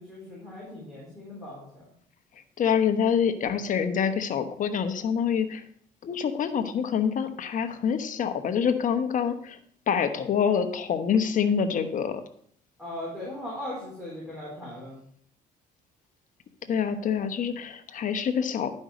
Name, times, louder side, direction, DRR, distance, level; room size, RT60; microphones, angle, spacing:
voice 1, 0.0-1.7 12.8-15.0, left 1 dB, ahead, -7 dB, 4.0 m, -38 dB
voice 2, 2.6-5.6 6.0-9.6 9.9-12.2 16.7-18.7, left 7 dB, 50° left, 9 dB, 1.1 m, -26 dB
11.0 x 5.4 x 5.0 m, 0.63 s
cardioid pair, 95°, 17 cm